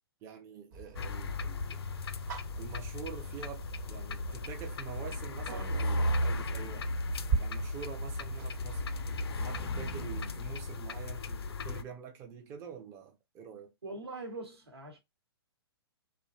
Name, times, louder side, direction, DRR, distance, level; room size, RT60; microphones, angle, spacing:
voice 1, 0.2-1.8 2.6-6.9 7.4-8.8 9.4-13.7, right 7 dB, 20° right, 0.4 m, -46 dB
sound 1, 0.7-10.2, right 4 dB, 45° right, 1.1 m, -41 dB
sound 2, 1.0-11.8, left 2 dB, 70° left, 0.4 m, -35 dB
voice 2, 13.8-15.0, right 2 dB, 80° right, 1.0 m, -42 dB
2.5 x 2.2 x 2.2 m
figure-of-eight pair, 115°, 13 cm